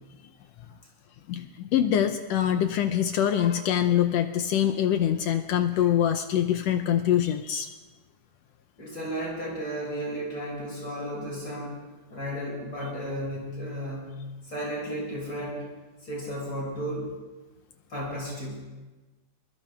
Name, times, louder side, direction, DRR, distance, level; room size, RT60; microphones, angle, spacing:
voice 1, 1.3-7.8, left 10 dB, 75° left, 8 dB, 1.6 m, -24 dB
voice 2, 8.8-11.8 12.1-14.2 14.4-15.7 16.0-17.1 17.9-18.6, equal, 35° left, -4 dB, 6.4 m, -34 dB
23.5 x 21.5 x 2.3 m, 1.2 s
omnidirectional pair, 3.3 m